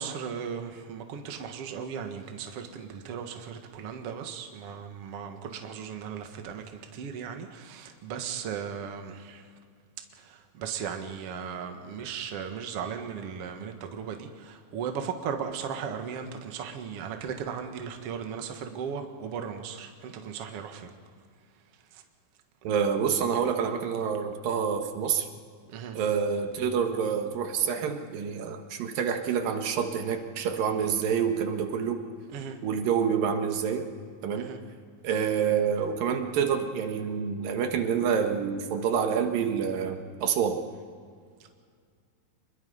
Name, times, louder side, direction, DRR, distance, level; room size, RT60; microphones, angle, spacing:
voice 1, 0.0-9.5 10.2-20.9 21.9-22.0 25.7-26.0 32.3-32.6 34.3-34.6, right 7 dB, 50° right, 5 dB, 2.2 m, -37 dB
voice 2, 22.6-25.3 25.9-32.0 32.6-33.9 34.2-34.5 35.0-40.6, right 7 dB, 85° right, 5 dB, 3.2 m, -27 dB
27.5 x 21.5 x 5.5 m, 2.1 s
omnidirectional pair, 3.9 m